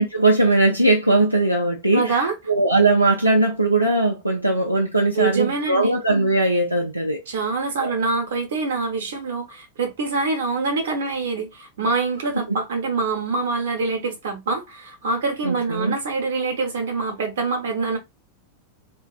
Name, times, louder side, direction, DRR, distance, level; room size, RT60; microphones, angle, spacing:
voice 1, 0.0-7.2 7.8-7.9 12.3-12.6 15.4-16.0, right 2 dB, 90° right, 0.4 m, -20 dB
voice 2, 1.9-2.3 5.1-6.0 7.3-18.0, right 4 dB, 60° right, 0.8 m, -25 dB
2.4 x 2.3 x 2.2 m
figure-of-eight pair, 90°, 0 cm